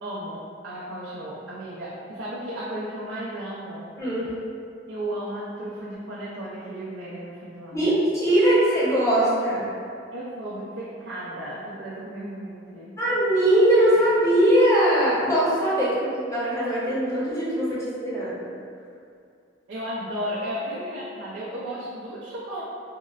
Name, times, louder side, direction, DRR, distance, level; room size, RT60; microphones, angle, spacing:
voice 1, 0.0-4.0 4.9-7.9 10.1-12.9 19.7-22.6, right 1 dB, 70° right, -8 dB, 0.4 m, -34 dB
voice 2, 4.0-4.3 7.7-9.7 13.0-18.4, right 1 dB, 15° left, -9 dB, 0.7 m, -21 dB
3.6 x 2.0 x 2.3 m, 2.4 s
head